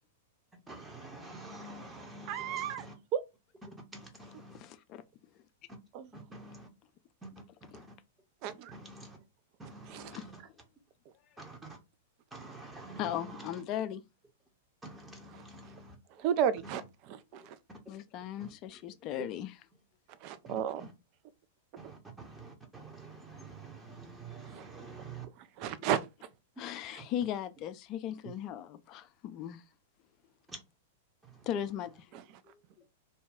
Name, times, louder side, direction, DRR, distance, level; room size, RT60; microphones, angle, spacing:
voice 1, 0.5-2.9 3.6-4.6 6.1-6.7 7.2-7.3 7.7-7.9 8.7-9.2 9.6-10.4 11.4-11.8 12.3-13.6 14.8-16.0 16.6-16.8 17.4-17.8 18.4-18.5 19.2-19.3 20.4-20.9 21.8-25.3 25.6-25.7 28.2-28.3 30.5-30.6 31.2-31.5, right 2 dB, 10° right, 0.8 m, -48 dB
voice 2, 2.3-2.9 3.1-3.2 5.9-6.1 8.4-8.7 9.9-10.1 16.2-17.6 20.2-20.8 24.5-24.7 25.6-26.1 32.1-32.2, right 9 dB, 40° right, 0.3 m, -33 dB
voice 3, 4.5-5.0 10.1-10.2 13.0-14.0 17.9-19.5 26.6-29.6 31.5-32.1 32.5-32.6, left 10 dB, 35° left, 0.4 m, -37 dB
2.7 x 2.2 x 3.5 m
figure-of-eight pair, 100°, 0 cm